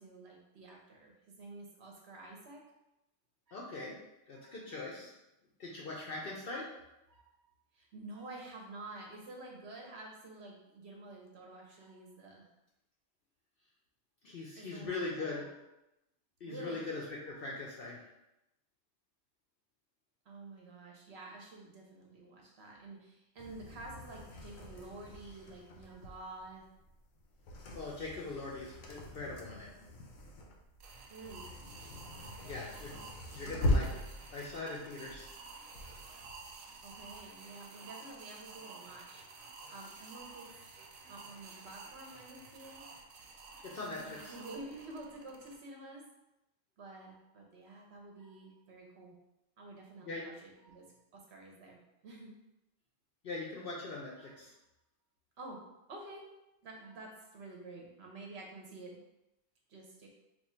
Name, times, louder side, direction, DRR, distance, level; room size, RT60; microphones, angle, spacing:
voice 1, 0.0-2.6 3.5-3.6 4.4-4.5 7.1-7.3 7.7-12.5 14.6-15.5 16.5-16.9 20.3-26.6 31.1-31.5 32.2-32.4 36.8-39.2 39.7-40.5 41.1-42.8 43.9-46.1 46.8-49.1 49.6-52.4 55.4-55.6 55.9-56.3 56.6-59.0 59.7-60.1, right 2 dB, 60° right, -1 dB, 0.8 m, -49 dB
voice 2, 3.5-3.9 4.3-5.1 5.6-6.7 14.2-15.5 16.4-18.0 27.7-29.7 32.4-33.0 33.3-34.0 34.3-35.3 43.6-44.3 50.0-50.3 53.2-54.5, left 3 dB, 55° left, -3 dB, 0.7 m, -41 dB
sound 1, 23.4-37.2, left 1 dB, 85° left, 1.0 m, -40 dB
sound 2, 30.8-45.5, right 4 dB, 80° right, 1.0 m, -52 dB
3.0 x 2.3 x 4.2 m, 0.90 s
omnidirectional pair, 1.4 m